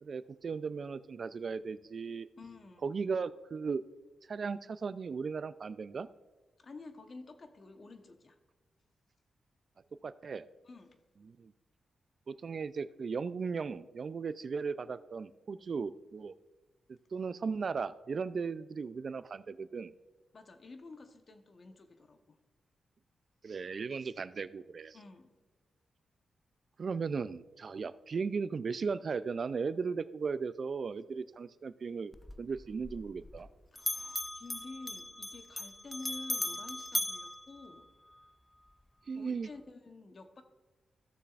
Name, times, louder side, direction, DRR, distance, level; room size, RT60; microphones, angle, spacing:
voice 1, 0.0-2.3 2.8-3.9 4.3-6.1 10.0-10.5 11.3-11.5 12.3-16.3 16.9-19.9 23.4-25.0 26.8-32.1 32.4-33.5 39.1-39.5, right 5 dB, 60° right, 15 dB, 0.4 m, -36 dB
voice 2, 2.4-2.9 6.6-8.4 10.3-10.4 10.6-11.0 20.3-22.4 24.9-25.4 33.7-37.9 39.1-40.4, left 3 dB, 50° left, 7 dB, 1.0 m, -50 dB
Bell, 32.1-33.5 33.8-38.2, left 1 dB, 10° left, 0.3 m, -38 dB
15.5 x 6.7 x 2.5 m, 1.2 s
cardioid pair, 55°, 0 cm